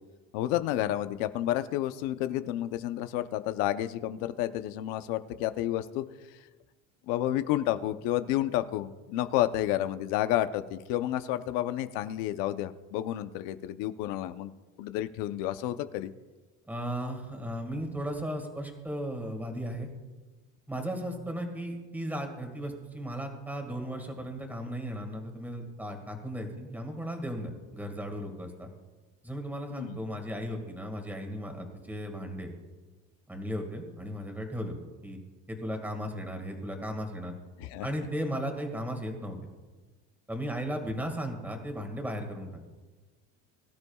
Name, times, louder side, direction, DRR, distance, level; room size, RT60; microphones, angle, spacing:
voice 1, 0.3-6.0 7.1-14.5 14.8-16.1 29.7-30.0 37.6-37.9, left 13 dB, 75° left, 10 dB, 0.8 m, -30 dB
voice 2, 16.7-19.9 20.7-28.7 29.2-32.5 33.3-34.8 35.0-35.2 35.5-37.3 37.8-39.4 40.3-42.5, equal, 5° right, 3 dB, 2.0 m, -36 dB
23.0 x 12.5 x 2.4 m, 1.2 s
cardioid pair, 150°, 34 cm